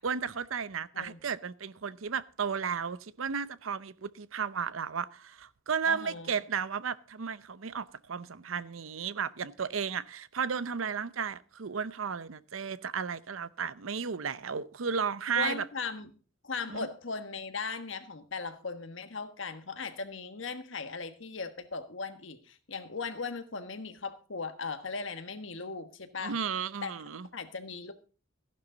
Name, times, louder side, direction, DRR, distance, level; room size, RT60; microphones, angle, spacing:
voice 1, 0.0-15.6 16.7-16.8 26.2-27.3, right 6 dB, 90° right, 0.7 m, -34 dB
voice 2, 5.8-6.4 15.3-16.1 16.4-26.4 26.8-26.9 27.3-27.9, left 4 dB, 70° left, 1.4 m, -38 dB
14.5 x 11.0 x 3.9 m
head